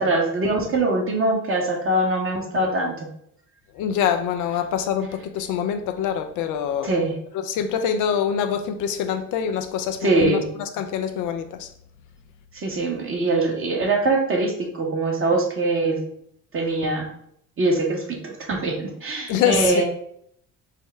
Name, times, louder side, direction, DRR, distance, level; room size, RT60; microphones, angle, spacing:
voice 1, 0.0-3.1 6.8-7.2 10.0-10.4 12.5-16.0 16.5-17.1 17.6-19.8, right 2 dB, 35° right, 1.3 m, -23 dB
voice 2, 3.8-7.0 7.3-11.7 19.3-19.8, left 8 dB, 55° left, 0.5 m, -25 dB
4.8 x 2.1 x 4.3 m
hypercardioid pair, 60°, 38 cm